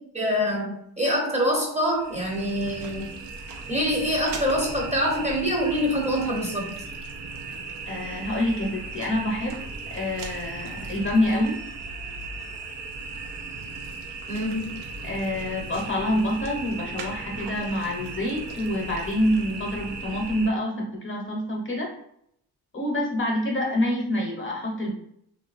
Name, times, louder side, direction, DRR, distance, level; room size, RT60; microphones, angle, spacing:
voice 1, 0.1-3.1 3.7-6.8 14.3-14.8, equal, 15° right, -1 dB, 0.7 m, -25 dB
sound 1, 1.9-20.5, right 3 dB, 70° right, 0.7 m, -37 dB
voice 2, 7.9-9.6 9.9-11.6 15.0-21.9 22.7-24.9, left 1 dB, 30° left, -1 dB, 0.7 m, -26 dB
2.9 x 2.4 x 2.4 m, 0.72 s
cardioid pair, 75°, 43 cm